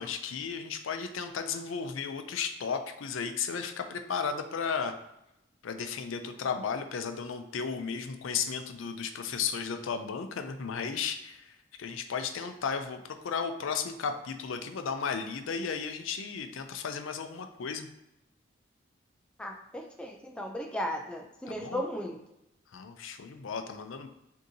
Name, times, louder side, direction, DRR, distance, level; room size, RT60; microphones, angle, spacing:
voice 1, 0.0-4.9 5.6-17.9 21.5-21.8 22.7-24.1, left 6 dB, 85° left, 7 dB, 0.4 m, -34 dB
voice 2, 19.4-22.2, equal, 5° left, 1 dB, 0.3 m, -36 dB
6.2 x 2.7 x 2.7 m, 0.86 s
head